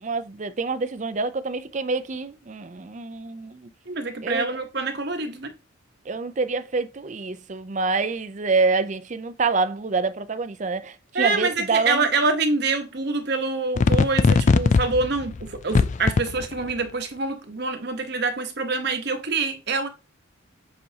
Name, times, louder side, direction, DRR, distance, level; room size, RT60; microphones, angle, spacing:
voice 1, 0.0-3.7 4.2-4.5 6.1-12.1, right 4 dB, 40° right, 0.5 m, -26 dB
voice 2, 3.9-5.5 11.1-19.9, right 3 dB, 55° right, 1.1 m, -26 dB
sound 1, 13.8-16.7, left 4 dB, 35° left, 0.3 m, -20 dB
7.6 x 4.4 x 2.8 m
head